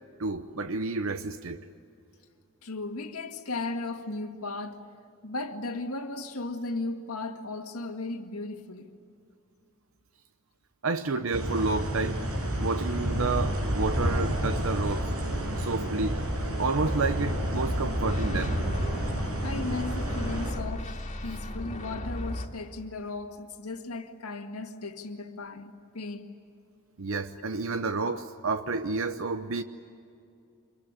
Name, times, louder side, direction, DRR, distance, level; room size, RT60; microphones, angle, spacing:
voice 1, 0.2-1.6 10.8-12.2 12.6-15.1 15.6-16.2 16.6-18.6 27.0-29.6, right 3 dB, 65° right, 0.8 m, -30 dB
voice 2, 2.6-4.8 5.2-9.0 19.4-20.9 21.2-26.4, left 2 dB, 80° left, 1.9 m, -36 dB
sound 1, 11.3-20.5, equal, 90° right, 6.5 m, -30 dB
sound 2, 16.9-22.5, left 1 dB, 30° left, 2.3 m, -35 dB
26.0 x 22.5 x 9.7 m
head